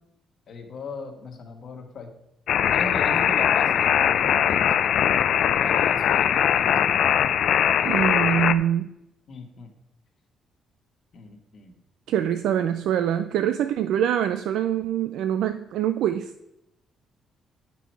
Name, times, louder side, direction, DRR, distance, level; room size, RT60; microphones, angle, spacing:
voice 1, 0.5-2.1 2.7-4.8 5.4-6.9 9.3-9.7 11.1-11.7, left 3 dB, 55° left, 4 dB, 1.5 m, -37 dB
sound 1, 2.5-8.5, left 9 dB, 70° left, 0.4 m, -21 dB
voice 2, 7.8-8.9 12.1-16.3, right 10 dB, 85° right, 9 dB, 0.3 m, -24 dB
8.2 x 5.9 x 4.6 m, 0.85 s
cardioid pair, 90°, 0 cm